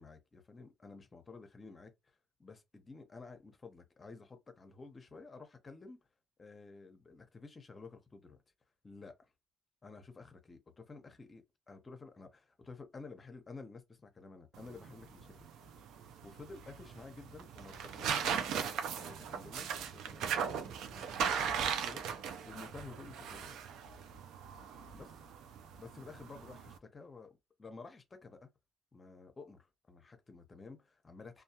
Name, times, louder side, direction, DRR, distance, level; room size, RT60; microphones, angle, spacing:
voice 1, 0.0-6.0 6.4-8.4 8.8-9.3 9.8-15.3 16.2-18.7 19.0-22.0 22.5-23.6 24.9-25.1 25.8-28.5 28.9-31.4, left 4 dB, 30° left, 0.7 m, -52 dB
sound 1, 14.5-26.8, right 7 dB, 85° right, 0.4 m, -38 dB
2.2 x 2.2 x 2.7 m
cardioid pair, 90°, 0 cm